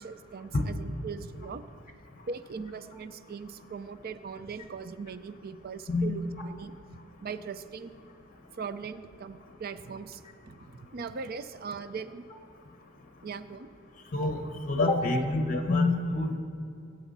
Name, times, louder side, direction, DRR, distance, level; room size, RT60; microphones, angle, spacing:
voice 1, 0.0-1.6 2.3-6.7 7.2-7.9 8.6-10.2 10.5-12.2 13.2-13.7, right 5 dB, 45° right, 12 dB, 0.5 m, -40 dB
voice 2, 14.1-16.4, left 2 dB, 40° left, 5 dB, 1.0 m, -26 dB
21.5 x 8.2 x 4.1 m, 2.7 s
head